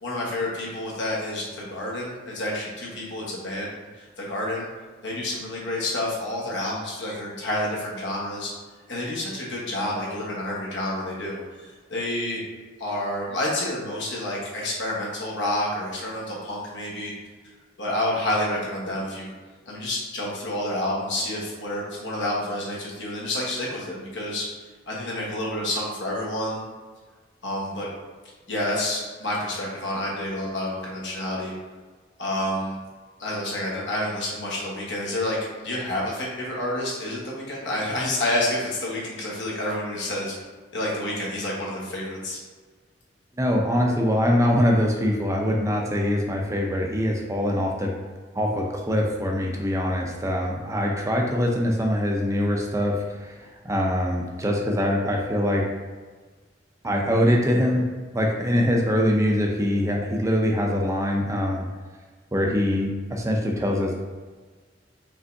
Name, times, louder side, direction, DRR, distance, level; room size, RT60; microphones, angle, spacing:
voice 1, 0.0-3.7 4.0-4.7 5.0-8.5 8.9-12.4 12.8-17.1 17.8-19.3 19.7-24.5 24.9-26.6 27.4-27.9 28.5-31.5 32.2-32.8 33.2-40.3 40.7-42.4, left 1 dB, 75° left, -4 dB, 1.3 m, -29 dB
voice 2, 43.4-47.9 48.3-55.7 56.8-57.9 58.1-61.7 62.3-63.9, equal, 15° right, 0 dB, 0.5 m, -23 dB
5.1 x 3.3 x 2.7 m, 1.4 s
head